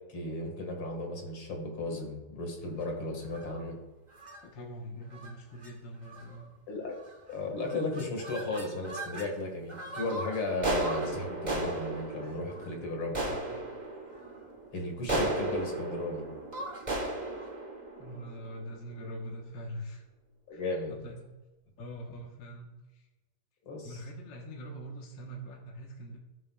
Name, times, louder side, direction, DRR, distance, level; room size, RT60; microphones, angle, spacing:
voice 1, 0.1-3.8 6.7-7.0 7.3-13.2 14.7-16.3 20.5-20.9 23.7-24.0, left 2 dB, 85° left, 2 dB, 2.8 m, -35 dB
sound 1, 3.2-3.6 4.2-4.4 5.1-5.3 5.6-5.7 6.0-6.4 7.0-7.3 7.6-9.3 9.7-18.9, right 1 dB, 25° right, 1.3 m, -36 dB
voice 2, 4.4-6.5 13.1-13.7 18.0-20.0 20.5-20.6 20.9-21.4 21.8-23.1 23.8-26.2, equal, 65° left, -1 dB, 2.0 m, -43 dB
18.0 x 6.8 x 2.4 m, 1.1 s
omnidirectional pair, 2.3 m